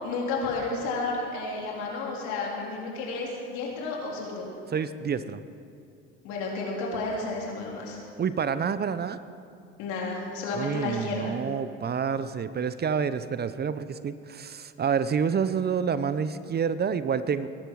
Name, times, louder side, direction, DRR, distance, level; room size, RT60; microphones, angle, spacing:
voice 1, 0.0-4.5 6.2-8.0 9.8-11.3, left 3 dB, 75° left, -2 dB, 3.6 m, -32 dB
voice 2, 4.7-5.4 8.2-9.2 10.5-17.5, right 7 dB, 35° right, 14 dB, 0.7 m, -28 dB
20.5 x 11.5 x 4.7 m, 2.5 s
hypercardioid pair, 65°, 29 cm